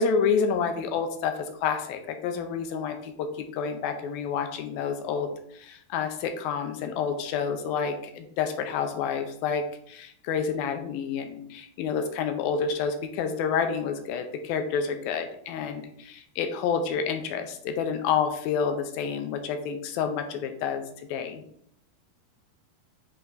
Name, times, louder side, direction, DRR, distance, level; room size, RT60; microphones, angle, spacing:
voice 1, 0.0-20.8 21.1-21.4, left 6 dB, 80° left, 6 dB, 2.3 m, -29 dB
10.0 x 3.4 x 4.0 m, 0.66 s
omnidirectional pair, 4.7 m